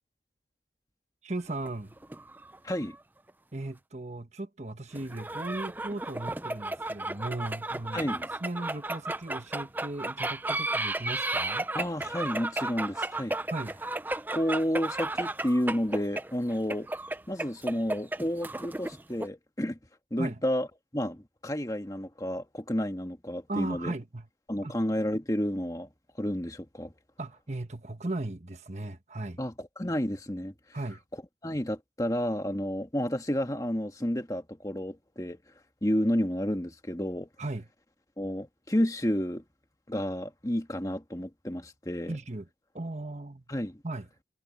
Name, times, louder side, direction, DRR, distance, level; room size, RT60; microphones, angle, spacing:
voice 1, 1.2-1.9 3.5-8.1 8.4-11.7 13.5-13.8 20.2-20.4 23.5-24.3 24.6-24.8 27.2-29.4 30.7-31.0 37.4-37.7 42.1-42.5 42.7-43.4 43.8-44.1, right 2 dB, 40° right, 1.3 m, -36 dB
sound 1, 1.5-3.0 3.3-3.4 5.0-19.3, right 2 dB, 10° right, 0.5 m, -34 dB
voice 2, 2.6-3.0 7.9-8.3 11.7-13.4 14.3-16.9 17.3-19.8 20.1-20.7 20.9-23.9 24.5-25.9 26.2-26.9 29.4-30.5 31.4-35.4 35.8-37.3 38.2-39.4 39.9-42.2 43.5-43.8, equal, 20° left, 1.6 m, -31 dB
head